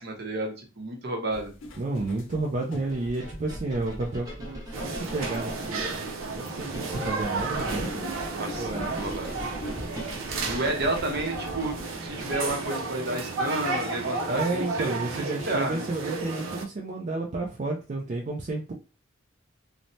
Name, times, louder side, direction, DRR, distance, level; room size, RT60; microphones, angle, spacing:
voice 1, 0.0-1.5 8.3-9.4 10.5-11.7 12.0-15.0 15.5-15.9, right 2 dB, 55° right, 2 dB, 0.8 m, -31 dB
sound 1, 1.3-3.8 4.5-4.6 6.9-9.9, left 1 dB, 75° left, 0.6 m, -43 dB
voice 2, 1.8-5.9 6.3-9.0 14.3-18.7, right 2 dB, 40° right, -1 dB, 0.4 m, -31 dB
sound 2, 2.9-12.9, equal, 20° right, 1.0 m, -40 dB
sound 3, 4.7-16.6, right 3 dB, 90° right, 0.5 m, -33 dB
3.1 x 2.1 x 2.6 m, 0.32 s
head